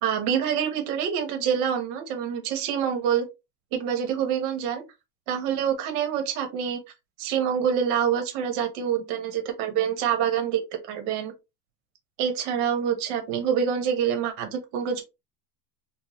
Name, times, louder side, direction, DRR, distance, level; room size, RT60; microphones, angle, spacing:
voice 1, 0.0-3.2 3.7-4.8 5.3-6.8 7.2-10.6 10.9-11.3 12.2-15.0, right 8 dB, 90° right, 1.4 m, -26 dB
4.7 x 2.2 x 3.0 m
cardioid pair, 170°, 43 cm